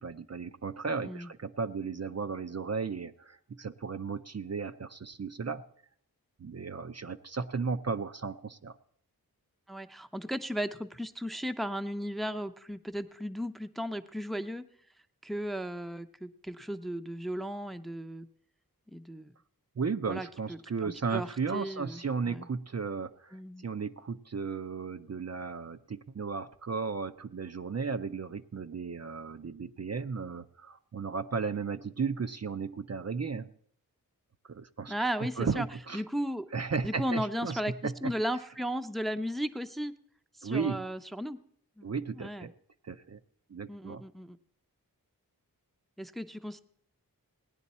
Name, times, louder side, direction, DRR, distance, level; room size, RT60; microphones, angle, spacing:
voice 1, 0.0-5.6 6.4-8.7 19.8-23.4 23.6-33.5 34.5-34.9 35.2-36.0 36.5-38.1 40.4-40.8 41.8-42.5 42.8-43.2 43.5-44.0, right 5 dB, 45° right, 9 dB, 0.6 m, -35 dB
voice 2, 9.7-14.7 15.2-18.3 18.9-19.3 20.1-22.5 23.3-23.6 34.9-35.7 35.9-36.5 36.8-39.9 40.4-41.4 41.8-41.9 42.1-42.5 43.7-44.4 46.0-46.6, equal, ahead, 10 dB, 0.6 m, -35 dB
18.0 x 10.0 x 4.2 m, 0.65 s
wide cardioid pair, 60°, 37 cm